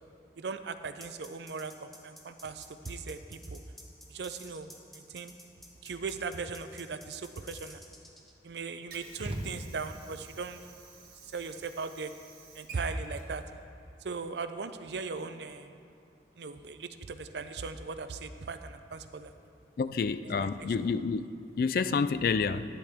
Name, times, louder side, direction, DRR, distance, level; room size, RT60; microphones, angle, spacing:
voice 1, 0.4-3.6 4.1-5.3 5.8-7.8 8.4-10.6 11.2-12.1 12.5-13.4 14.0-15.7 16.4-19.3 20.4-20.5, right 4 dB, 80° right, 10 dB, 0.5 m, -38 dB
sound 1, 1.0-8.3, equal, ahead, 0.9 m, -51 dB
Water / Sink (filling or washing), 8.4-14.4, right 4 dB, 55° right, 1.3 m, -53 dB
sound 2, 9.2-10.2, right 1 dB, 30° right, 0.8 m, -39 dB
voice 2, 19.8-21.3 21.6-22.7, left 5 dB, 55° left, 13 dB, 0.3 m, -28 dB
11.5 x 10.0 x 3.6 m, 2.5 s
head